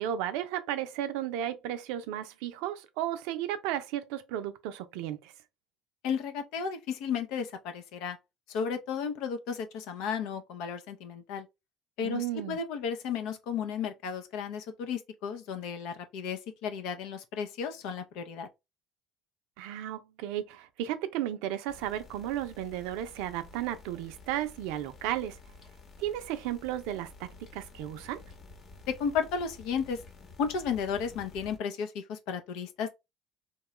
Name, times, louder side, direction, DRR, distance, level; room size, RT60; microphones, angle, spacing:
voice 1, 0.0-5.3 12.0-12.6 19.6-25.4 26.0-28.2, right 11 dB, 75° right, 0.4 m, -34 dB
voice 2, 6.0-8.2 8.5-11.5 12.0-18.5 28.9-30.0 30.4-32.9, left 6 dB, 75° left, 0.5 m, -33 dB
sound 1, 21.7-31.6, left 3 dB, 45° left, 0.9 m, -51 dB
2.9 x 2.3 x 3.0 m
supercardioid pair, 80°, 0 cm